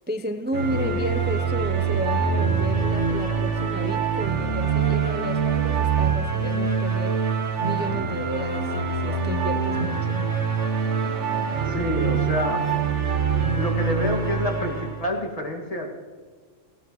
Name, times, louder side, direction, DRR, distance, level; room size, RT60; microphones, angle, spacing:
voice 1, 0.1-7.2 7.6-10.3, equal, 15° right, 7 dB, 0.4 m, -32 dB
sound 1, 0.5-15.0, right 5 dB, 65° right, 1.5 m, -24 dB
voice 2, 11.7-12.7 13.5-15.9, equal, 30° left, -1 dB, 2.0 m, -27 dB
18.5 x 17.0 x 3.1 m, 1.5 s
omnidirectional pair, 1.3 m